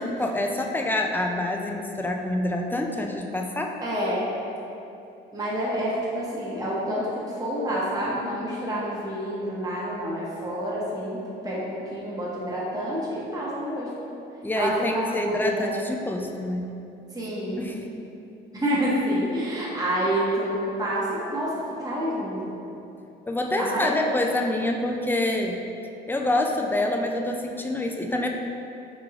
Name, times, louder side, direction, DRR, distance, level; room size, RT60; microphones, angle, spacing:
voice 1, 0.0-3.8 14.4-16.7 17.6-17.9 23.3-25.6 26.1-28.3, left 1 dB, 10° left, 2 dB, 0.3 m, -26 dB
voice 2, 3.8-4.2 5.3-13.9 14.5-15.7 17.1-17.7 18.5-21.5 21.8-22.6 23.6-24.0, equal, 20° right, -7 dB, 0.9 m, -28 dB
3.6 x 3.2 x 3.6 m, 2.8 s
cardioid pair, 90°, 20 cm